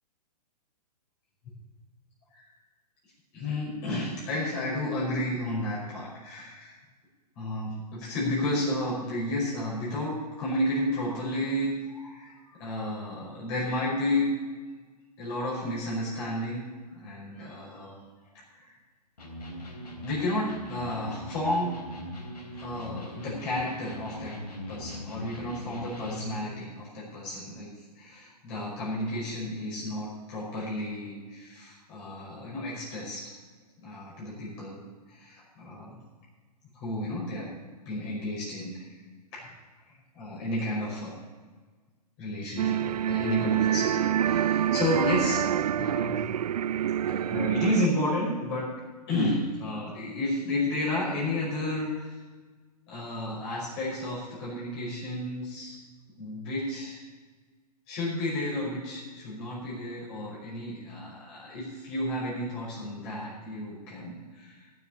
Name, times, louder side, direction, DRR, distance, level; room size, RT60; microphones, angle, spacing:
voice 1, 3.3-6.8 7.4-14.3 15.2-17.9 18.5-18.8 20.0-21.8 22.6-24.3 24.7-27.7 28.0-33.2 33.8-36.0 36.7-37.5 37.9-39.0 39.3-39.5 39.9-41.1 42.2-45.5 45.8-46.2 47.0-48.7 49.1-52.2 52.9-55.8 56.2-57.0 57.9-64.7, left 1 dB, 40° left, -6 dB, 5.5 m, -32 dB
Electric guitar, 19.2-26.5, equal, 75° left, 3.8 m, -40 dB
sound 1, 42.6-47.9, right 10 dB, 75° right, 0.4 m, -26 dB
13.5 x 7.4 x 8.7 m, 1.4 s
hypercardioid pair, 125°, 21 cm